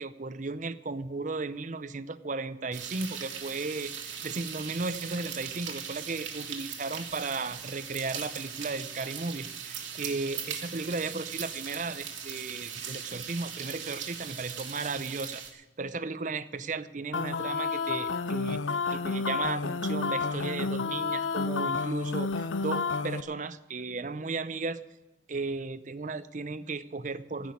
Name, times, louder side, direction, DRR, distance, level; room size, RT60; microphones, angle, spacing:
voice 1, 0.0-3.9 4.2-24.8 25.3-27.5, right 3 dB, 40° right, 14 dB, 0.6 m, -35 dB
sound 1, 2.7-15.5, right 7 dB, 90° right, 2.3 m, -39 dB
sound 2, 17.1-23.2, left 4 dB, 90° left, 0.6 m, -30 dB
15.5 x 6.2 x 9.6 m, 1.1 s
head